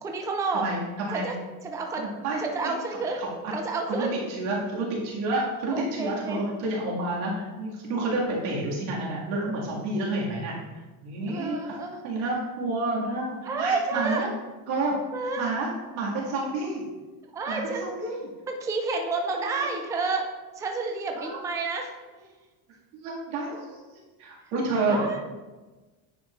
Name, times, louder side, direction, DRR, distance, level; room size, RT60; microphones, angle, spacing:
voice 1, 0.0-0.7 1.1-1.3 1.6-2.1 2.4-3.2 3.5-4.2 5.7-6.4 11.3-12.0 13.5-14.2 15.1-15.5 17.3-17.9 18.5-21.9 24.9-25.2, right 3 dB, 10° right, 3 dB, 0.4 m, -30 dB
voice 2, 0.5-1.3 2.0-2.4 3.2-3.5 3.9-4.1 4.4-10.6 11.0-11.8 12.0-13.2 13.6-14.3 14.7-14.9 15.4-15.7 15.9-16.8 17.5-18.3 19.3-19.7 21.2-21.4 22.9-23.8 24.2-25.0, right 2 dB, 90° right, -4 dB, 2.1 m, -29 dB
9.3 x 5.0 x 2.5 m, 1.2 s
cardioid pair, 140°, 40 cm